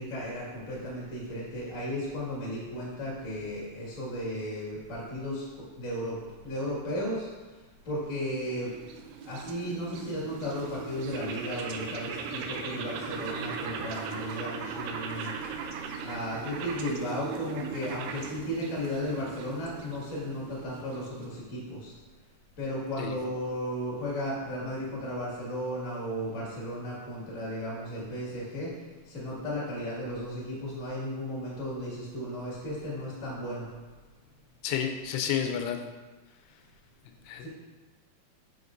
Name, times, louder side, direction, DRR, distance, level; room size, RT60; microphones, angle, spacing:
voice 1, 0.0-5.4 5.8-6.2 6.4-7.3 7.8-8.7 9.2-15.3 16.0-21.9 22.6-28.7 29.0-33.7 37.4-37.5, equal, 35° left, -6 dB, 1.3 m, -35 dB
sound 1, 8.1-21.5, right 5 dB, 85° right, 2.5 m, -39 dB
voice 2, 34.6-35.8 37.3-37.5, left 8 dB, 85° left, 5 dB, 2.7 m, -30 dB
7.9 x 5.9 x 2.6 m, 1.3 s
omnidirectional pair, 4.7 m